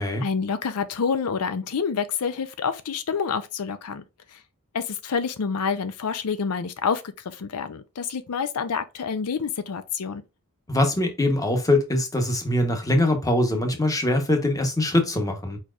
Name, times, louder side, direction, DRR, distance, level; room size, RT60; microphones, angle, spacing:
voice 1, 0.2-4.0 4.3-4.4 4.7-10.2, left 6 dB, 80° left, 0.5 m, -28 dB
voice 2, 10.7-15.6, left 1 dB, 15° left, 1.0 m, -22 dB
4.8 x 4.3 x 2.4 m
head